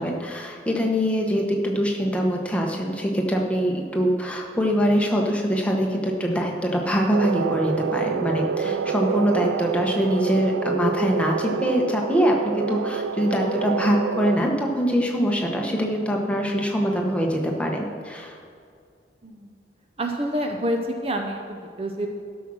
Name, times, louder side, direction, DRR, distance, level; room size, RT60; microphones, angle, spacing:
voice 1, 0.0-18.4, equal, 5° left, 0 dB, 1.1 m, -23 dB
sound 1, 7.1-14.4, right 6 dB, 85° right, 0.3 m, -27 dB
voice 2, 20.0-22.1, right 1 dB, 30° right, 3 dB, 0.7 m, -28 dB
12.5 x 6.2 x 6.2 m, 2.3 s
head